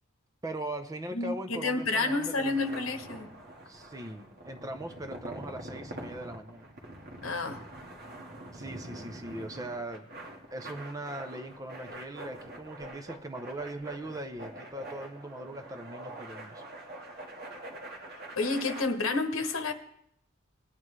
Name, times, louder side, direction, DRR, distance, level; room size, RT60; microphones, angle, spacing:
voice 1, 0.4-2.8 3.7-6.7 8.5-10.1 10.5-16.6, right 1 dB, 15° right, 0.7 m, -40 dB
voice 2, 1.1-3.3 7.2-7.6 18.4-19.7, left 3 dB, 80° left, 1.0 m, -30 dB
sound 1, 1.8-18.8, right 1 dB, 50° right, 1.8 m, -45 dB
19.0 x 9.2 x 3.2 m
head